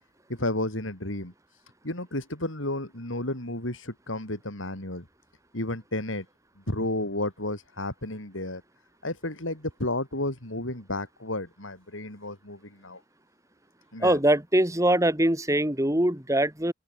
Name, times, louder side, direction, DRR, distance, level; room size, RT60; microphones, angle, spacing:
voice 1, 0.3-1.3 1.8-5.1 5.5-6.3 6.7-8.6 9.0-13.0 13.9-14.2, left 1 dB, 85° left, 6.9 m, -32 dB
voice 2, 14.0-16.7, right 1 dB, 15° right, 2.7 m, -23 dB
open air
head